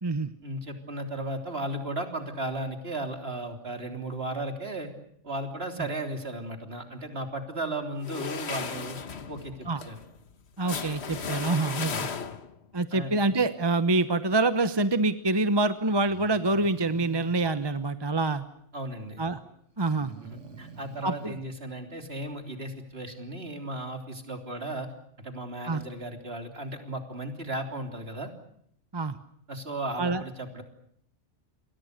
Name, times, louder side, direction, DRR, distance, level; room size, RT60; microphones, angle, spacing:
voice 1, 0.4-4.9 5.2-9.0 9.3-10.0 11.8-12.2 12.9-13.2 18.7-19.3 20.2-24.9 25.2-28.3 29.5-30.6, right 1 dB, 55° right, 4 dB, 3.7 m, -35 dB
sound 1, 8.0-12.6, left 6 dB, 65° left, 1.5 m, -36 dB
voice 2, 10.6-12.1 12.7-18.4 19.2-19.4 19.8-20.1 21.0-21.3 25.7-25.8 28.9-29.2 30.0-30.2, right 2 dB, 25° right, 11 dB, 1.0 m, -26 dB
Breathing, 16.0-17.5 19.9-21.4, right 4 dB, 80° right, 2.1 m, -45 dB
29.5 x 23.0 x 6.7 m, 0.69 s
omnidirectional pair, 1.2 m